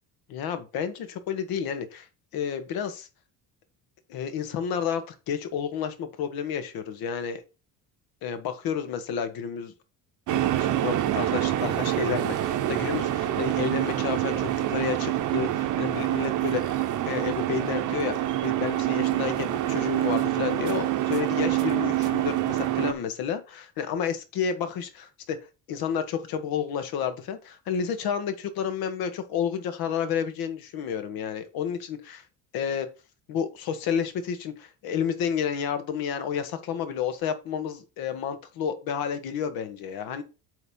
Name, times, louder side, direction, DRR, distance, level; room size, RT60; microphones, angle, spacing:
voice 1, 0.3-2.1 2.3-3.1 4.1-7.4 8.2-9.7 10.3-16.8 17.0-25.4 25.7-32.2 32.5-32.9 33.3-40.2, left 7 dB, 65° left, 9 dB, 1.4 m, -31 dB
sound 1, 10.3-22.9, right 13 dB, 50° right, 0.8 m, -26 dB
7.9 x 3.1 x 5.4 m, 0.30 s
cardioid pair, 145°, 38 cm